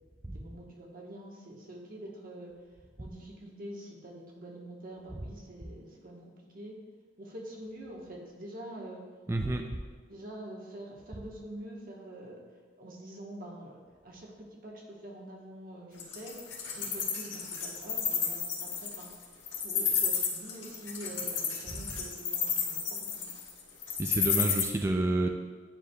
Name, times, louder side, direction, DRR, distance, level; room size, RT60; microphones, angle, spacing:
voice 1, 0.3-2.5 3.0-6.2 6.5-6.8 7.2-9.0 10.1-12.4 12.8-16.4 16.7-19.1 19.6-23.3, right 1 dB, 50° right, -1 dB, 1.2 m, -45 dB
voice 2, 9.3-9.6 24.0-25.3, right 2 dB, 15° right, 3 dB, 0.3 m, -29 dB
Wild animals, 16.0-24.6, left 8 dB, 85° left, 1.4 m, -30 dB
9.9 x 4.8 x 2.3 m, 1.5 s
head